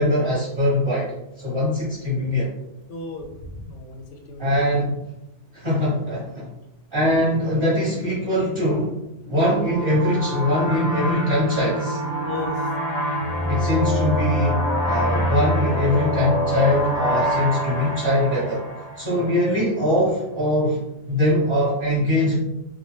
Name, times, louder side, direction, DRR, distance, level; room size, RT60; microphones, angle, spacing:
voice 1, 0.0-2.5 4.4-5.0 5.5-6.5 6.9-8.9 9.3-12.0 13.5-18.6 19.0-20.8 21.1-22.4, left 1 dB, 25° right, -9 dB, 0.9 m, -22 dB
voice 2, 2.9-4.8 12.2-12.7 19.1-19.3, left 2 dB, 80° left, 2 dB, 0.9 m, -36 dB
sound 1, 9.3-19.6, equal, 45° left, 0.6 m, -25 dB
2.5 x 2.1 x 3.2 m, 0.90 s
omnidirectional pair, 1.2 m